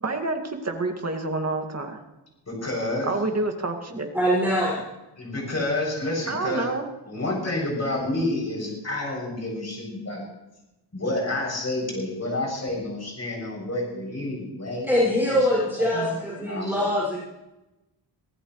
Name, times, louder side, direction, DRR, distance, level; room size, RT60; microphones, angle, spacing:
voice 1, 0.0-2.0 3.0-4.1 6.3-6.9 15.9-16.2, right 2 dB, 40° right, 3 dB, 2.2 m, -28 dB
voice 2, 2.5-3.1 5.2-6.7 7.1-10.2 10.9-15.0 15.3-15.4 15.8-15.9 16.4-16.8, left 1 dB, 40° left, -2 dB, 7.3 m, -29 dB
voice 3, 4.1-4.8 14.9-17.2, equal, 5° right, -6 dB, 5.8 m, -23 dB
24.5 x 16.0 x 3.2 m, 0.97 s
wide cardioid pair, 130°, 41 cm